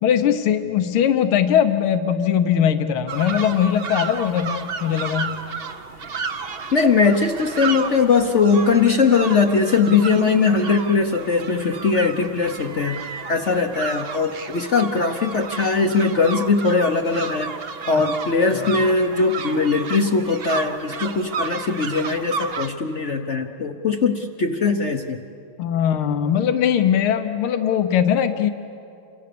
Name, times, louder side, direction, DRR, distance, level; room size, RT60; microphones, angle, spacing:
voice 1, 0.0-5.4 18.5-18.7 25.6-28.5, left 9 dB, 85° left, 8 dB, 1.8 m, -20 dB
sound 1, 3.1-22.7, right 5 dB, 45° right, 0.7 m, -32 dB
voice 2, 6.7-17.5 17.9-25.2, left 4 dB, 50° left, 5 dB, 0.9 m, -20 dB
29.0 x 26.0 x 6.8 m, 2.6 s
omnidirectional pair, 2.3 m